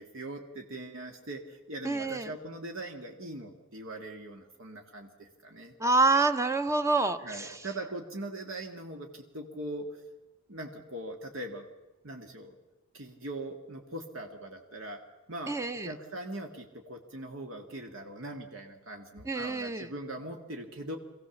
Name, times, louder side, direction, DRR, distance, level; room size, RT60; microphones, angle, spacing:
voice 1, 0.0-5.7 7.2-10.0 10.5-11.7 12.0-12.6 12.9-15.0 15.3-15.6 15.8-21.0, right 1 dB, 60° right, 3 dB, 1.8 m, -41 dB
voice 2, 1.8-2.3 5.8-7.6 15.5-15.9 19.3-19.9, right 3 dB, 15° right, 10 dB, 0.9 m, -27 dB
24.0 x 16.0 x 7.1 m, 1.1 s
head